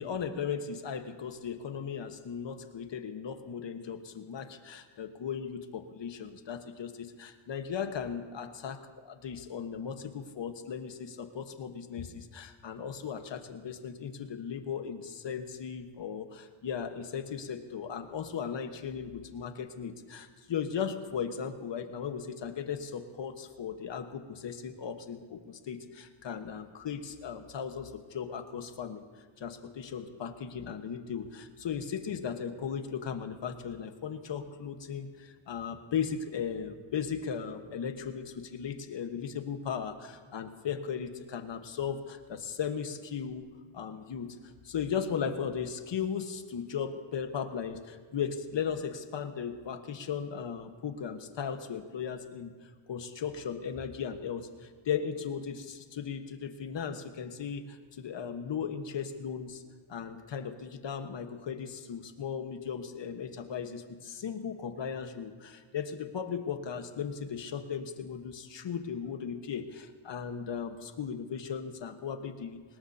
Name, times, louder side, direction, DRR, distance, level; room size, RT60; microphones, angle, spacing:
voice 1, 0.0-43.5 43.7-59.6 59.9-72.6, left 7 dB, 60° left, 7 dB, 1.4 m, -37 dB
25.0 x 20.0 x 2.9 m, 1.5 s
cardioid pair, 105°, 49 cm